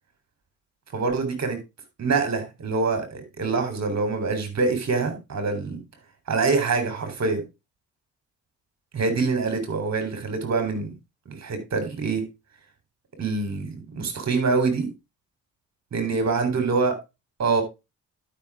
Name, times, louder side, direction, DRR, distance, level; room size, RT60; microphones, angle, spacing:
voice 1, 0.9-1.6 2.0-5.8 6.3-7.4 8.9-10.9 11.3-12.2 13.2-14.9 15.9-16.9 17.4-17.6, right 4 dB, 45° right, 4.1 m, -25 dB
12.0 x 6.1 x 3.7 m
hypercardioid pair, 60°, 36 cm